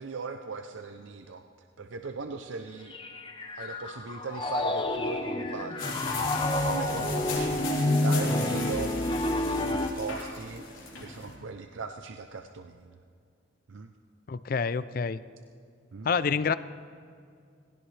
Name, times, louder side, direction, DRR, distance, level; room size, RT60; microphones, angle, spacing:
voice 1, 0.0-1.4 1.8-2.9 3.6-6.0 6.6-10.7 11.0-13.0 13.7-13.9 15.9-16.1, right 4 dB, 75° right, 6 dB, 0.6 m, -39 dB
Piano, 2.9-9.9, left 1 dB, 25° left, 0.8 m, -30 dB
sound 1, 5.8-11.3, left 3 dB, 80° left, 3.8 m, -31 dB
voice 2, 14.3-15.2 16.0-16.5, left 5 dB, 45° left, 16 dB, 0.4 m, -27 dB
18.5 x 17.0 x 3.3 m, 2.3 s
head